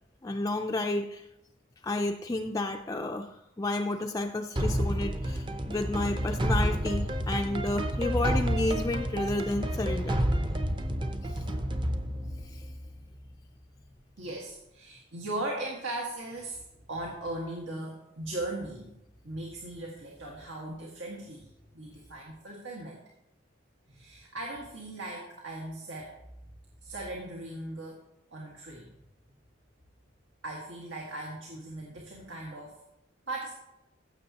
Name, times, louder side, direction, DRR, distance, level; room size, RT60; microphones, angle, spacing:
voice 1, 0.2-1.3 1.8-10.2 11.3-11.4 12.4-12.6, left 2 dB, 20° left, 3 dB, 0.4 m, -31 dB
sound 1, 4.6-13.4, equal, 25° right, 0.6 m, -30 dB
voice 2, 14.2-18.9 19.2-23.0 23.9-26.1 26.8-28.0 28.3-29.0 30.4-32.8 33.3-33.5, right 2 dB, 85° right, -2 dB, 1.7 m, -38 dB
15.5 x 7.1 x 2.9 m, 0.85 s
head